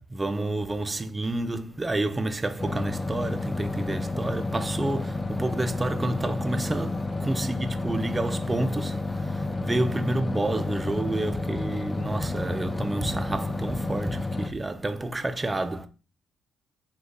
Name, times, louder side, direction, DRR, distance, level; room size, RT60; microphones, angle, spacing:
voice 1, 0.0-15.9, right 2 dB, 20° right, 0.8 m, -29 dB
sound 1, 2.6-14.5, left 2 dB, 20° left, 0.9 m, -30 dB
7.9 x 3.2 x 4.0 m
cardioid pair, 90°, 0 cm